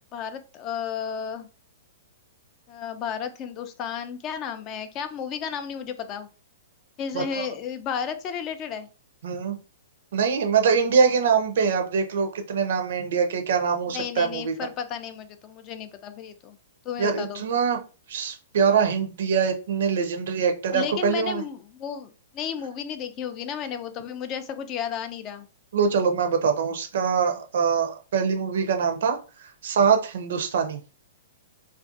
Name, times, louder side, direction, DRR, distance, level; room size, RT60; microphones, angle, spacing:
voice 1, 0.1-1.5 2.7-6.3 7.0-8.9 13.9-16.6 16.9-17.4 20.7-25.5, left 8 dB, 35° left, 10 dB, 0.3 m, -33 dB
voice 2, 7.1-7.5 9.2-9.6 10.1-14.5 17.0-17.8 18.1-21.4 25.7-29.2 29.6-30.8, right 6 dB, 60° right, 5 dB, 0.5 m, -23 dB
2.4 x 2.3 x 2.5 m, 0.34 s
figure-of-eight pair, 115°, 0 cm